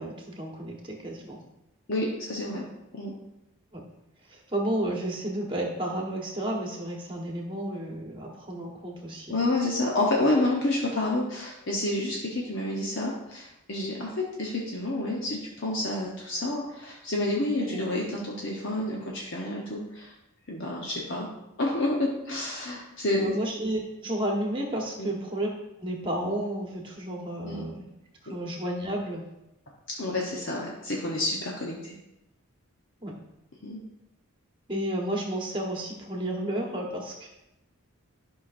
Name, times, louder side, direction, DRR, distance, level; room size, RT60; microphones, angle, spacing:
voice 1, 0.0-1.4 3.7-3.8 4.3-9.4 17.7-17.8 23.1-25.5 25.8-27.9 28.2-29.2 33.0-33.1 34.7-37.3, right 1 dB, 20° right, -1 dB, 1.2 m, -32 dB
voice 2, 1.9-2.6 2.9-3.1 9.3-20.1 20.5-21.3 21.6-23.3 25.0-25.1 27.4-27.6 29.9-32.0 33.6-33.8, left 2 dB, 55° left, -3 dB, 1.0 m, -29 dB
11.5 x 5.7 x 2.6 m, 0.90 s
head